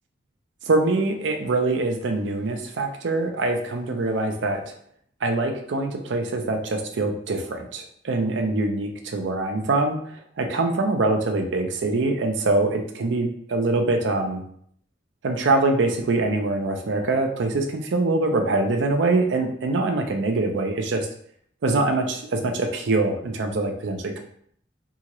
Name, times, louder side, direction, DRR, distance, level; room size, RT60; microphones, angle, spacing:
voice 1, 0.7-4.6 5.2-10.0 10.4-14.4 15.2-21.1 21.6-24.2, right 2 dB, 80° right, 4 dB, 0.5 m, -24 dB
2.8 x 2.4 x 2.9 m, 0.65 s
head